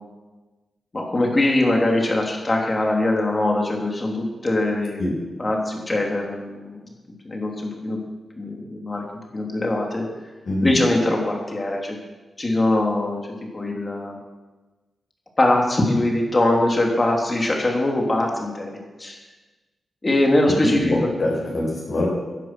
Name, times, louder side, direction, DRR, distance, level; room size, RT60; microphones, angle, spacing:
voice 1, 0.9-5.0 5.4-6.8 7.2-8.0 8.4-9.0 9.3-10.1 10.6-12.0 12.4-13.2 13.5-14.2 15.4-18.7 19.0-19.2 20.0-21.1, left 1 dB, 25° left, 0 dB, 3.2 m, -22 dB
voice 2, 10.5-10.8 20.8-22.1, left 1 dB, 50° left, -3 dB, 5.4 m, -24 dB
16.5 x 10.5 x 6.1 m, 1.2 s
wide cardioid pair, 120°, 0 cm